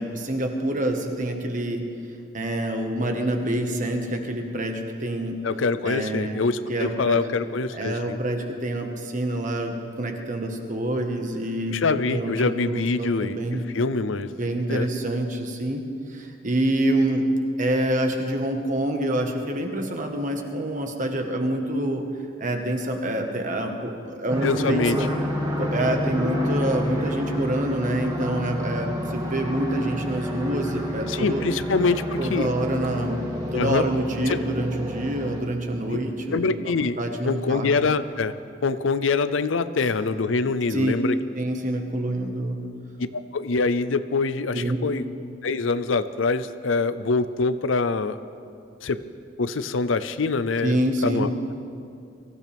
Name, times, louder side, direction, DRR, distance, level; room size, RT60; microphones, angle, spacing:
voice 1, 0.0-1.9 2.3-5.4 5.8-6.4 6.7-7.2 7.7-11.8 12.1-13.7 14.3-15.8 16.1-17.3 17.6-22.1 22.4-25.1 25.6-31.5 32.2-33.2 33.5-36.6 37.0-37.7 40.7-40.9 41.3-42.6 44.5-44.9 50.6-51.4, right 1 dB, 40° right, 3 dB, 1.4 m, -26 dB
voice 2, 5.4-8.2 11.7-13.4 13.7-14.3 14.7-14.9 24.4-25.0 31.1-32.5 33.5-33.8 34.3-34.4 36.3-38.3 38.6-41.1 43.1-45.0 45.4-48.2 48.8-49.0 49.4-51.5, left 4 dB, 85° left, 13 dB, 0.6 m, -24 dB
sound 1, 24.3-35.4, equal, 20° right, 1.9 m, -29 dB
23.5 x 15.0 x 3.5 m, 2.4 s
head